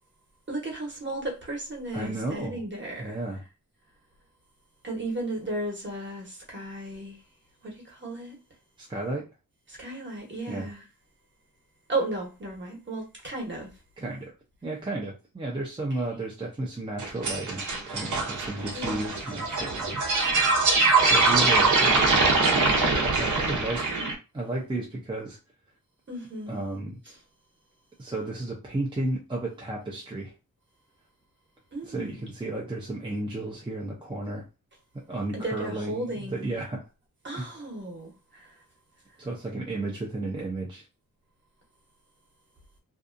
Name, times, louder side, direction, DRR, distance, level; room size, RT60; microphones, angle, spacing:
voice 1, 0.5-3.2 4.8-7.2 7.6-8.4 9.7-10.8 11.9-13.8 16.0-16.2 18.7-19.2 26.1-26.6 27.0-27.2 31.7-32.2 35.3-36.5 37.2-38.6, right 2 dB, 35° right, 1.0 m, -35 dB
voice 2, 1.9-2.6 3.0-3.4 8.8-9.3 10.5-10.7 14.0-14.3 14.6-20.5 21.1-22.6 23.0-24.0 24.3-25.4 26.5-27.0 28.0-30.3 31.8-34.4 34.9-36.8 37.3-37.5 39.2-40.8, right 2 dB, 15° right, 0.5 m, -33 dB
sound 1, 17.0-24.1, right 3 dB, 65° right, 0.8 m, -23 dB
2.7 x 2.3 x 2.5 m
wide cardioid pair, 125°, 33 cm